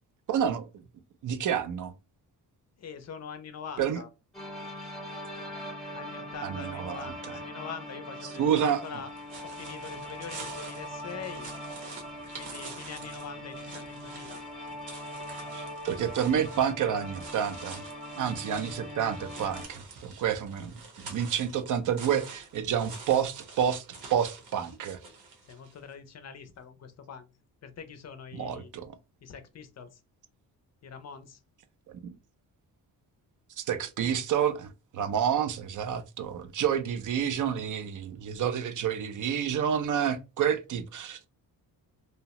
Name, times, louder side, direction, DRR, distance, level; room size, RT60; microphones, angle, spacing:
voice 1, 0.3-0.7 1.2-1.9 3.8-4.0 6.4-7.1 8.2-9.0 15.5-17.8 18.1-20.7 21.0-23.8 24.1-25.0 28.3-28.9 32.0-32.1 33.6-41.2, right 8 dB, 55° right, 0.5 m, -29 dB
voice 2, 2.8-4.1 5.9-9.1 9.6-11.5 12.3-14.4 25.4-27.3 27.6-28.7 29.2-30.0 30.8-31.4, left 6 dB, 45° left, 0.4 m, -43 dB
sound 1, 4.3-19.7, equal, ahead, 0.8 m, -41 dB
sound 2, 8.8-25.8, right 4 dB, 75° right, 1.0 m, -47 dB
2.8 x 2.0 x 2.8 m
cardioid pair, 130°, 37 cm